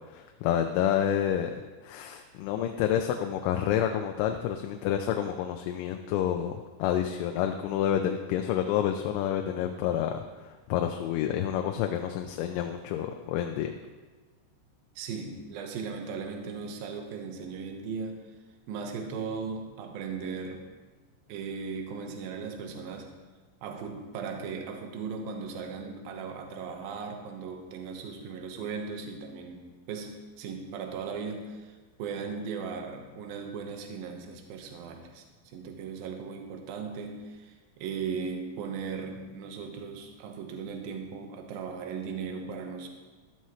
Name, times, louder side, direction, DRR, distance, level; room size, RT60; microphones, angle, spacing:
voice 1, 0.1-13.7, left 10 dB, 90° left, 4 dB, 3.2 m, -29 dB
voice 2, 15.0-18.2 18.7-20.7 21.3-23.2 23.6-42.9, right 5 dB, 70° right, 3 dB, 2.5 m, -37 dB
13.5 x 13.0 x 3.2 m, 1.3 s
omnidirectional pair, 5.5 m